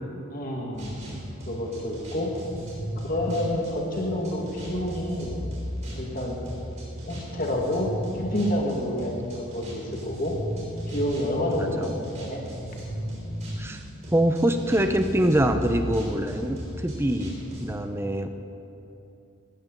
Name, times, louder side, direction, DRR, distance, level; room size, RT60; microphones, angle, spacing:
voice 1, 0.3-0.9 1.5-2.3 3.0-5.3 5.9-6.4 7.1-10.3 10.9-12.4, left 1 dB, 40° left, -1 dB, 1.9 m, -29 dB
sound 1, 0.7-17.7, equal, 30° right, 3.8 m, -36 dB
voice 2, 11.5-11.9 13.6-13.8 14.1-18.3, right 1 dB, 10° right, 6 dB, 0.6 m, -24 dB
17.5 x 13.5 x 3.9 m, 2.9 s
head